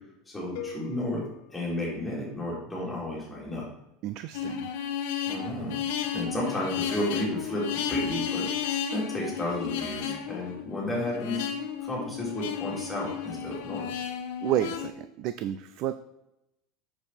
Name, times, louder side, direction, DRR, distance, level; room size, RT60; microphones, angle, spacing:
voice 1, 0.3-1.2 1.5-3.6 5.2-5.8 6.1-11.5 11.8-13.9, left 1 dB, 5° left, -5 dB, 3.2 m, -32 dB
sound 1, 0.6-2.6, left 8 dB, 65° left, 0.9 m, -44 dB
voice 2, 4.0-4.7 14.4-15.9, right 11 dB, 50° right, 12 dB, 0.4 m, -30 dB
sound 2, 4.3-14.9, left 8 dB, 85° left, 1.3 m, -33 dB
7.9 x 6.9 x 4.2 m, 0.88 s
cardioid pair, 160°, 0 cm